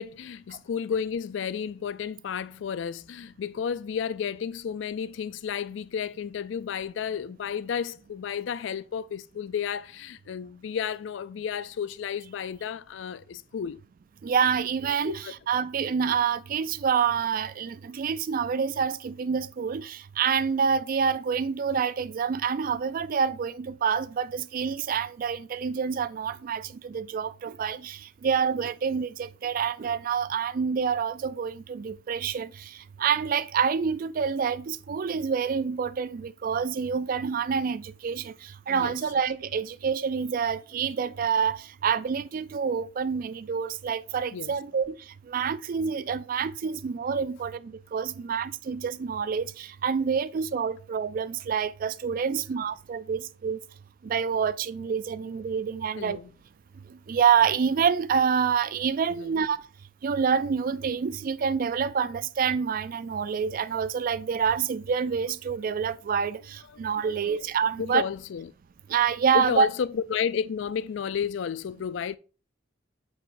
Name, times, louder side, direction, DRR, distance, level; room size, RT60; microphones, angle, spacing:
voice 1, 0.0-13.8 15.0-15.3 38.7-39.0 44.3-44.5 56.0-56.3 59.2-59.4 66.7-67.5 67.8-68.5 69.3-72.2, left 7 dB, 70° left, 0.4 m, -32 dB
voice 2, 14.2-45.0 45.3-53.6 54.0-56.2 56.9-59.6 60.0-68.0 68.9-69.7, right 6 dB, 45° right, 0.3 m, -27 dB
7.7 x 4.9 x 2.6 m
head